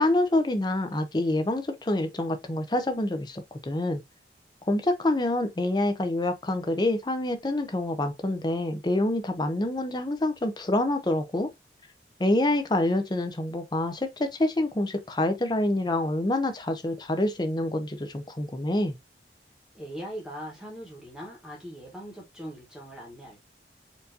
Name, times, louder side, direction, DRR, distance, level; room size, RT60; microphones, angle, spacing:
voice 1, 0.0-4.0 4.7-11.5 12.2-18.9, left 1 dB, 25° left, 0.5 m, -26 dB
voice 2, 19.7-23.4, equal, 5° right, 1.1 m, -40 dB
4.5 x 2.6 x 2.6 m
head